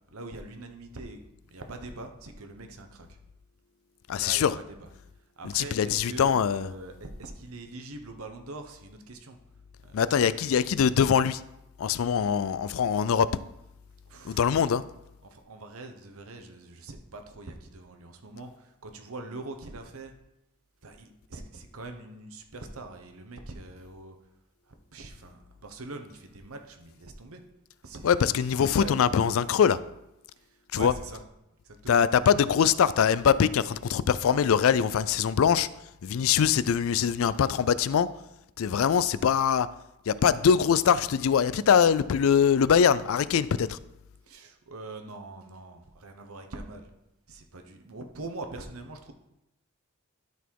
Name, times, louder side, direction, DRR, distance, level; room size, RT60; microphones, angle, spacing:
voice 1, 0.1-1.2 1.5-3.1 4.1-4.9 5.4-9.4 9.8-10.5 14.1-14.7 15.3-20.1 20.8-24.1 24.9-27.4 27.8-29.0 30.4-30.5 30.7-31.3 31.6-32.1 44.3-46.9 47.3-49.1, right 2 dB, 70° right, 5 dB, 1.0 m, -43 dB
voice 2, 4.1-4.5 5.5-6.7 9.9-11.4 11.8-13.3 14.3-14.8 28.0-29.8 30.7-30.9 31.9-35.7 36.0-38.1 38.6-39.7 40.1-43.8, left 7 dB, 65° left, 17 dB, 0.3 m, -23 dB
12.0 x 4.2 x 4.6 m, 0.87 s
head